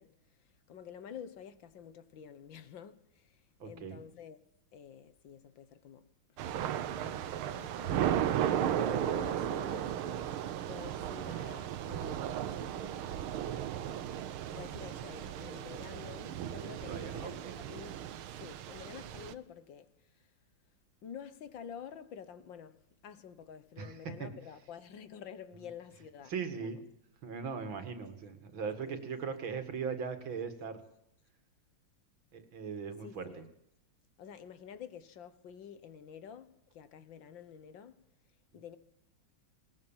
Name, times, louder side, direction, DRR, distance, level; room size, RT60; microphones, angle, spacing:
voice 1, 0.0-4.4 4.7-6.4 6.9-10.0 10.7-13.2 14.6-18.0 18.4-20.3 21.0-26.8 28.8-29.0 33.0-33.5 34.2-38.0 38.5-38.8, left 8 dB, 65° left, 1.8 m, -49 dB
voice 2, 3.6-4.0 16.9-17.6 23.8-23.9 24.2-24.3 26.3-26.8 27.2-30.8 32.3-33.4, right 6 dB, 70° right, 2.9 m, -39 dB
Thunder / Rain, 6.4-19.3, right 10 dB, 90° right, 1.8 m, -35 dB
20.0 x 19.5 x 7.4 m
omnidirectional pair, 2.2 m